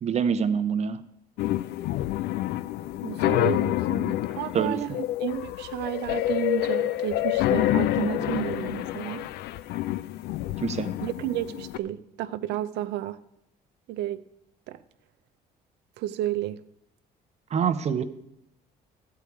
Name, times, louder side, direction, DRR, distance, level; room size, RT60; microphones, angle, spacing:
voice 1, 0.0-1.0 4.5-5.0 10.6-10.9 17.5-18.0, right 7 dB, 40° right, 10 dB, 0.8 m, -26 dB
sound 1, 1.4-11.8, left 14 dB, 75° left, 0.4 m, -28 dB
voice 2, 3.0-4.9 5.2-9.2 11.0-13.2 13.9-14.2 14.7-14.8 16.0-16.6, right 13 dB, 80° right, 12 dB, 0.7 m, -32 dB
13.0 x 4.8 x 8.4 m, 0.80 s
cardioid pair, 110°, 17 cm